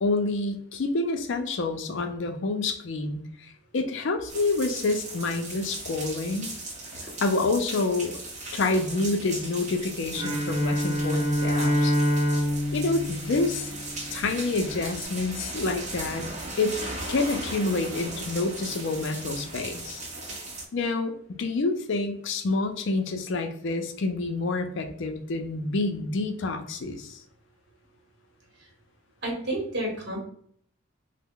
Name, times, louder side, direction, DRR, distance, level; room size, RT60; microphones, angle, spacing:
voice 1, 0.0-6.5 7.0-8.2 8.5-11.9 12.7-13.7 14.1-16.3 16.6-16.8 17.1-20.0 20.7-27.2, left 3 dB, 55° left, 6 dB, 0.4 m, -28 dB
sound 1, 4.3-20.7, right 2 dB, 30° right, 0.6 m, -38 dB
Bowed string instrument, 10.1-14.4, equal, 90° right, 0.8 m, -26 dB
voice 2, 29.2-30.2, right 1 dB, 50° right, 0 dB, 1.0 m, -30 dB
3.2 x 2.0 x 3.6 m, 0.63 s
head